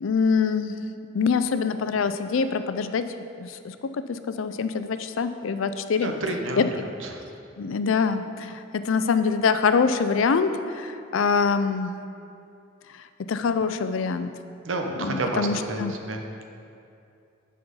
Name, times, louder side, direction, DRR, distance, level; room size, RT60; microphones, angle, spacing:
voice 1, 0.0-0.8 1.1-3.1 3.4-3.7 4.1-6.1 6.6-6.9 7.6-11.9 13.3-14.3 15.0-15.9, left 5 dB, 85° left, 10 dB, 0.4 m, -24 dB
voice 2, 6.0-6.6 7.0-7.2 14.6-16.2, right 2 dB, 85° right, 3 dB, 0.9 m, -29 dB
10.0 x 4.3 x 5.4 m, 2.5 s
head